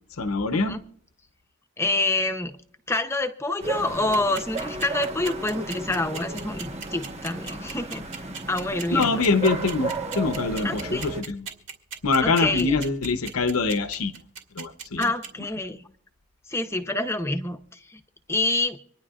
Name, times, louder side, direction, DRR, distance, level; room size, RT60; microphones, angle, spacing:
voice 1, 0.2-0.8 8.9-11.4 12.0-14.1 14.5-15.1, left 3 dB, 85° left, 0.8 m, -24 dB
voice 2, 1.8-2.5 2.9-8.0 8.5-9.2 10.6-11.1 12.2-12.7 15.0-15.8 16.5-18.0 18.3-18.8, left 2 dB, 10° left, 0.7 m, -27 dB
sound 1, 3.6-11.2, right 2 dB, 30° right, 1.3 m, -34 dB
sound 2, 3.9-15.3, right 6 dB, 55° right, 2.3 m, -36 dB
26.0 x 10.5 x 2.5 m
head